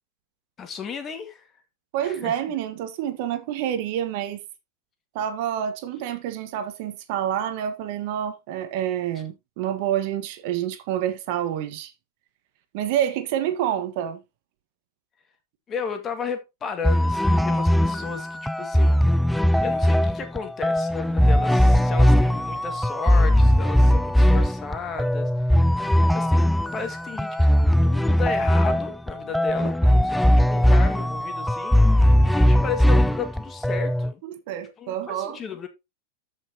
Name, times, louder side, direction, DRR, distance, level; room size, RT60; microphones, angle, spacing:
voice 1, 0.6-1.5 2.0-2.4 15.7-19.0 19.6-25.3 26.1-27.4 27.8-30.2 30.5-34.2 34.8-35.7, left 6 dB, 25° left, 2.0 m, -34 dB
voice 2, 1.9-4.4 5.1-11.9 12.7-14.2 34.2-35.4, right 10 dB, 60° right, 1.4 m, -28 dB
sound 1, 16.8-34.1, equal, ahead, 0.4 m, -19 dB
13.5 x 5.6 x 2.9 m
hypercardioid pair, 120°, 0 cm